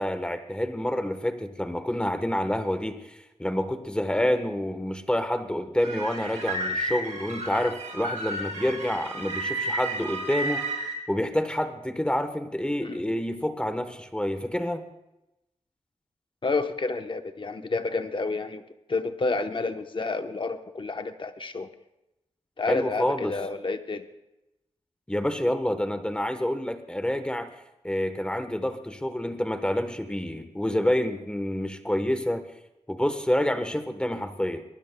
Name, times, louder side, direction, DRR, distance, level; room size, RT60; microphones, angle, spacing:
voice 1, 0.0-10.6 11.1-14.8 22.7-23.4 25.1-27.5 27.8-32.4 32.9-34.6, left 1 dB, 10° left, 8 dB, 1.1 m, -28 dB
sound 1, 5.8-10.9, right 2 dB, 85° right, 2.4 m, -32 dB
voice 2, 16.4-18.6 18.9-21.7 22.6-24.1, left 3 dB, 45° left, 7 dB, 0.9 m, -29 dB
23.0 x 19.5 x 2.2 m, 0.92 s
wide cardioid pair, 115°, 12 cm